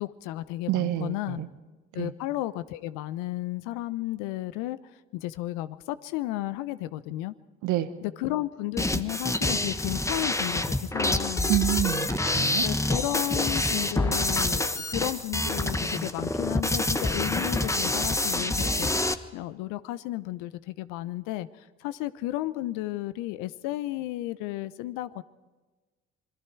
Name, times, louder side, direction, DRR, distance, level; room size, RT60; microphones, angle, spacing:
voice 1, 0.0-1.4 1.9-4.8 5.1-7.3 8.0-11.5 12.6-25.2, left 16 dB, 65° left, 15 dB, 0.9 m, -33 dB
voice 2, 0.7-1.5 2.0-2.1 7.6-7.9 11.5-12.7, right 14 dB, 60° right, 10 dB, 1.5 m, -28 dB
sound 1, 8.8-19.1, left 2 dB, 10° left, 1.2 m, -27 dB
27.0 x 22.0 x 4.7 m, 1.2 s
hypercardioid pair, 55°, 34 cm